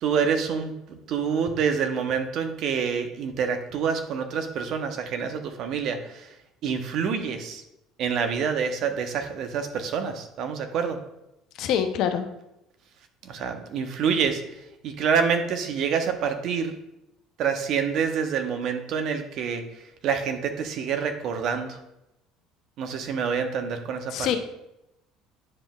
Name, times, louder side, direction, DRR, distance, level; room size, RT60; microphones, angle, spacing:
voice 1, 0.0-6.3 6.6-7.6 8.0-11.0 13.2-14.4 14.8-16.7 17.4-19.6 20.0-21.8 22.8-24.1, right 6 dB, 60° right, 7 dB, 0.8 m, -27 dB
voice 2, 11.6-12.3 24.1-24.4, left 9 dB, 60° left, 7 dB, 0.7 m, -25 dB
9.5 x 5.2 x 2.3 m, 0.88 s
hypercardioid pair, 65°, 0 cm